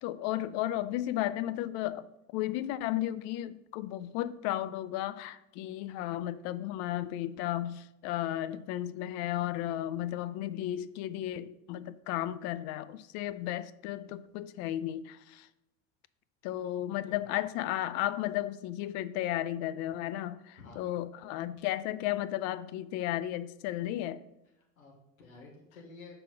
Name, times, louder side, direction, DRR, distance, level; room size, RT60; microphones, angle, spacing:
voice 1, 0.0-2.1 2.3-15.5 16.4-24.2, left 13 dB, 40° left, 14 dB, 0.5 m, -34 dB
voice 2, 16.9-17.2 20.6-20.9 24.8-26.1, left 3 dB, 70° left, -1 dB, 1.8 m, -51 dB
5.8 x 4.9 x 5.9 m, 0.88 s
figure-of-eight pair, 75°, 43 cm